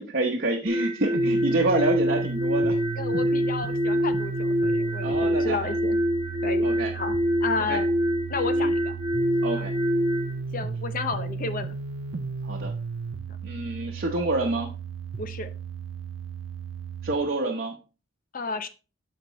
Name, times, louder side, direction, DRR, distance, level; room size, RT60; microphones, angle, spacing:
voice 1, 0.1-2.8 5.0-5.6 6.6-6.9 7.7-7.8 8.6-8.7 9.4-9.7 12.4-12.7 13.4-14.7 17.0-17.7, right 2 dB, 50° right, 0 dB, 1.0 m, -27 dB
sound 1, 0.7-10.3, equal, 10° right, 1.1 m, -25 dB
sound 2, 1.1-17.1, right 4 dB, 80° right, 0.6 m, -34 dB
voice 2, 2.9-6.0 6.4-6.7 6.9-7.1 7.4-7.9 8.3-9.0 9.6-9.7 10.5-11.7 15.2-15.5 18.3-18.7, left 4 dB, 45° left, 10 dB, 0.7 m, -32 dB
12.5 x 4.5 x 3.1 m, 0.32 s
head